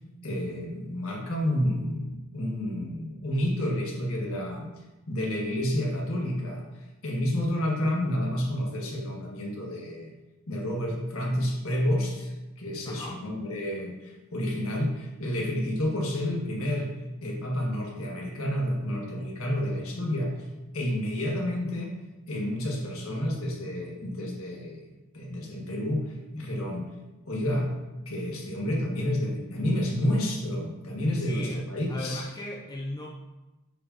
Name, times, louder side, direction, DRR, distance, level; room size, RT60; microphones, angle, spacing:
voice 1, 0.2-4.7 5.1-6.7 7.0-10.1 10.5-16.9 17.2-20.5 20.7-21.9 22.3-26.9 27.2-27.7 28.0-32.3, left 1 dB, 70° left, -1 dB, 1.6 m, -30 dB
voice 2, 12.8-13.2 31.2-31.6 31.9-33.1, left 1 dB, 20° left, -1 dB, 0.5 m, -36 dB
9.7 x 4.8 x 2.9 m, 1.1 s
head